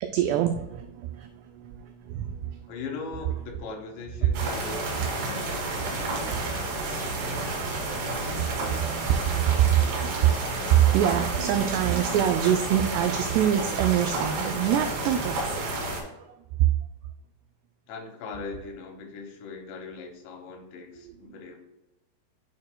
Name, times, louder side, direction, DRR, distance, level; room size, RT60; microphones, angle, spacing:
voice 1, 0.0-1.3 1.6-2.6 8.7-8.8 9.4-10.4 10.7-15.4, right 11 dB, 90° right, 7 dB, 2.4 m, -24 dB
voice 2, 2.7-8.6 17.9-21.6, left 4 dB, 75° left, 2 dB, 3.2 m, -40 dB
sound 1, 4.3-16.0, right 2 dB, 70° right, 4.0 m, -30 dB
9.4 x 6.4 x 2.2 m, 0.97 s
omnidirectional pair, 5.3 m